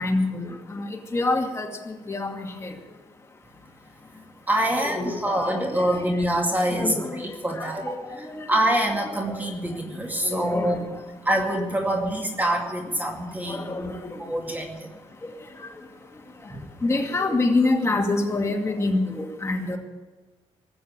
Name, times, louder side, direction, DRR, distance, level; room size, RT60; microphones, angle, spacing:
voice 1, 0.0-3.0 4.5-6.1 6.7-8.6 9.4-9.5 10.2-11.0 13.4-14.3 15.2-19.8, left 2 dB, 25° left, 1 dB, 2.4 m, -28 dB
voice 2, 4.5-7.8 8.1-10.8 11.2-13.9 14.2-14.9 16.5-16.7, right 1 dB, 15° right, 1 dB, 2.3 m, -25 dB
19.5 x 7.5 x 8.8 m, 1.2 s
cardioid pair, 125°, 12 cm